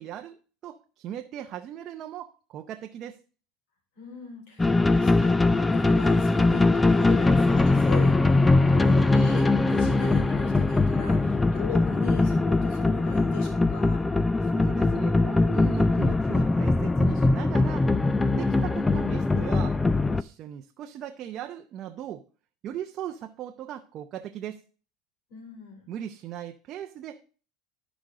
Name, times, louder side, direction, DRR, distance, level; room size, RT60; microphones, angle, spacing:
voice 1, 0.0-3.2 14.4-17.9 18.4-19.8 20.1-22.2 22.6-24.6 25.9-27.2, right 10 dB, 45° right, 5 dB, 0.6 m, -38 dB
voice 2, 4.0-14.0 25.3-25.9, left 6 dB, 75° left, 4 dB, 3.8 m, -40 dB
sound 1, 4.6-20.2, left 2 dB, 10° left, 0.3 m, -22 dB
12.5 x 5.1 x 3.7 m, 0.38 s
supercardioid pair, 130°, 0 cm